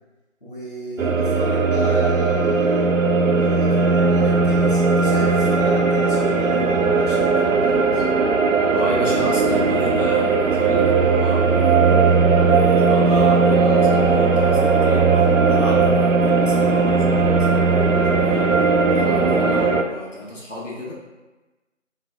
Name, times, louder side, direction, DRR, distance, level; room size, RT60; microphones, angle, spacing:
voice 1, 0.4-2.9 3.4-8.0, equal, 40° left, -9 dB, 1.0 m, -33 dB
sound 1, 1.0-19.8, right 4 dB, 80° right, 0.5 m, -18 dB
voice 2, 8.7-11.9 12.5-18.6 18.9-20.9, left 1 dB, 70° left, -4 dB, 1.2 m, -31 dB
3.9 x 2.4 x 3.3 m, 1.2 s
figure-of-eight pair, 175°, 39 cm